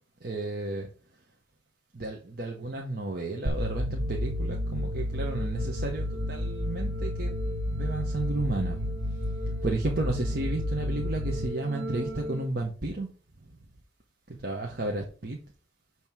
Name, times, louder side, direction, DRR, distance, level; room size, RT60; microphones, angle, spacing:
voice 1, 0.2-0.9 1.9-7.3 7.7-8.9 9.6-13.1 14.3-15.4, right 2 dB, 55° right, 1.0 m, -32 dB
sound 1, 3.5-12.5, left 1 dB, 75° right, 1.1 m, -31 dB
8.9 x 3.1 x 6.1 m
head